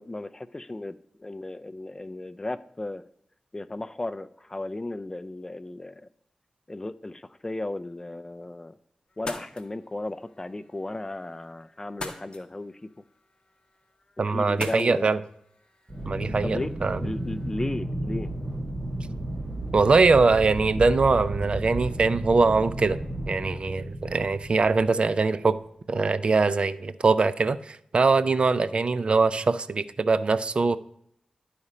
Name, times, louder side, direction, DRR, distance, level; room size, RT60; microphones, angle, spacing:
voice 1, 0.0-3.0 3.5-6.0 6.7-8.8 9.2-12.9 14.3-15.1 16.4-16.7 17.0-18.3, left 2 dB, 25° left, 13 dB, 0.4 m, -35 dB
sound 1, 9.1-17.5, left 3 dB, 40° left, 0.9 m, -45 dB
voice 2, 14.2-15.2 16.1-17.0 19.7-23.0 23.3-25.6 25.9-30.8, right 4 dB, 50° right, 14 dB, 0.4 m, -22 dB
Aircraft, 15.9-25.3, right 1 dB, 20° right, 2.9 m, -33 dB
11.0 x 4.2 x 4.9 m, 0.70 s
wide cardioid pair, 90°, 2 cm